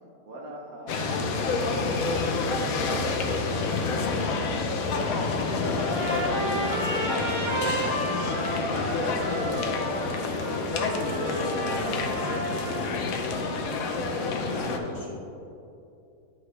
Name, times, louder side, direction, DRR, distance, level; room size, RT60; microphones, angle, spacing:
voice 1, 0.2-11.2 14.4-15.1, right 1 dB, 75° right, -1 dB, 1.5 m, -43 dB
sound 1, 0.9-14.8, left 4 dB, 70° left, 1.1 m, -28 dB
Trumpet, 5.7-13.1, right 2 dB, 40° right, 0.4 m, -32 dB
voice 2, 11.1-11.4 11.7-12.9 13.2-13.9 14.5-15.1, left 2 dB, 50° left, -3 dB, 1.4 m, -42 dB
9.7 x 4.8 x 3.3 m, 2.7 s
omnidirectional pair, 1.6 m